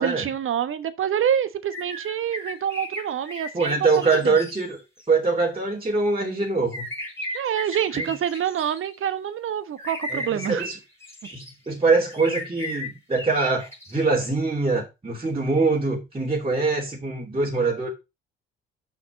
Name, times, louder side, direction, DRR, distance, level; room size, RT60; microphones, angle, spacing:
voice 1, 0.0-4.4 7.3-10.7, right 9 dB, 45° right, 1.2 m, -26 dB
sound 1, 1.7-5.0 6.7-8.9 9.8-11.5 12.1-14.0, equal, 10° left, 3.5 m, -35 dB
voice 2, 3.5-4.8 5.1-6.9 7.9-8.1 10.1-10.8 11.3-17.9, right 3 dB, 20° right, 2.8 m, -23 dB
6.3 x 5.9 x 5.2 m
figure-of-eight pair, 50°, 30 cm